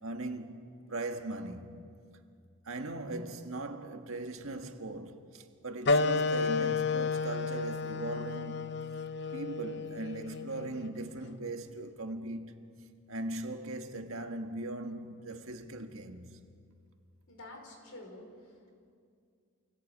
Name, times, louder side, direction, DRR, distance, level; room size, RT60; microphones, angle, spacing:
voice 1, 0.0-1.9 2.6-8.7 9.3-12.7 13.1-16.4, right 2 dB, 75° right, 1.7 m, -39 dB
sound 1, 5.8-11.0, left 4 dB, 50° left, 0.6 m, -31 dB
voice 2, 17.3-18.7, left 1 dB, 90° left, 5.2 m, -49 dB
27.5 x 17.5 x 8.5 m
head